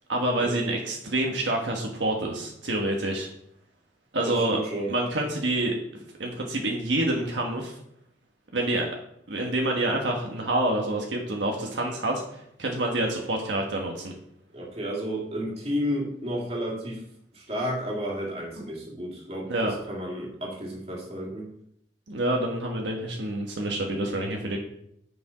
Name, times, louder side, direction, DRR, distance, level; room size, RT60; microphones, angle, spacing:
voice 1, 0.1-3.3 4.1-4.6 4.9-5.7 6.2-7.7 8.5-8.9 9.3-12.2 12.6-14.1 18.6-18.7 19.5-19.7 22.1-24.6, right 1 dB, 75° right, 0 dB, 1.4 m, -27 dB
voice 2, 4.2-4.9 14.5-17.0 17.3-21.5, equal, 35° right, -3 dB, 2.4 m, -32 dB
7.0 x 6.9 x 5.1 m, 0.74 s
head